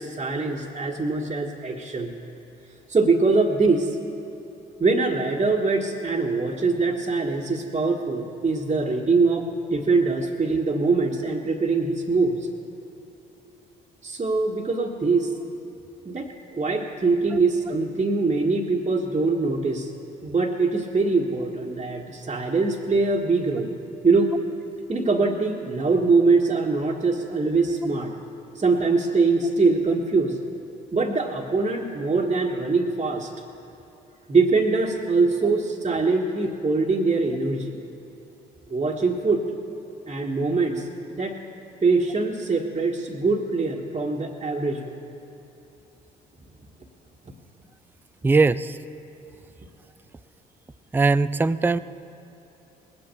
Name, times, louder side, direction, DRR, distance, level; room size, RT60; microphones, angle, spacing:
voice 1, 0.0-2.2 2.9-4.0 4.8-12.5 14.0-15.3 16.0-19.9 20.2-23.8 24.0-24.3 24.9-28.1 28.5-30.4 30.9-33.3 34.3-37.8 38.7-39.4 40.1-40.9 41.1-41.4 41.8-45.0, right 3 dB, 30° right, -4 dB, 1.5 m, -23 dB
voice 2, 48.2-48.8 50.9-51.8, right 3 dB, 10° right, 14 dB, 0.4 m, -20 dB
19.5 x 7.9 x 6.9 m, 3.0 s
hypercardioid pair, 55°, 21 cm